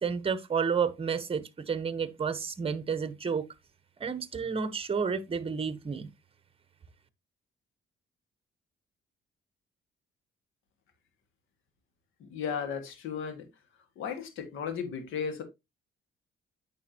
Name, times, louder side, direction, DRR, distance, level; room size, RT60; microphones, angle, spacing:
voice 1, 0.0-3.4 4.0-6.1, right 6 dB, 30° right, 1.0 m, -31 dB
voice 2, 12.2-13.5 14.0-15.4, left 7 dB, 85° left, 1.9 m, -35 dB
9.2 x 6.2 x 2.9 m
cardioid pair, 90°, 20 cm